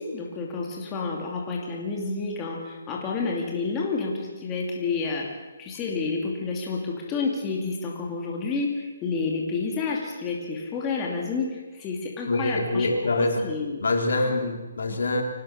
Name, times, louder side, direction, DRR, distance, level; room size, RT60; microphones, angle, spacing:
voice 1, 0.0-12.9 13.2-13.8 14.2-14.3 14.9-15.0, left 4 dB, 15° left, -1 dB, 2.5 m, -30 dB
voice 2, 12.3-13.5 13.8-15.2, left 2 dB, 75° left, 3 dB, 3.9 m, -25 dB
24.0 x 18.5 x 6.6 m, 1.2 s
hypercardioid pair, 175°, 0 cm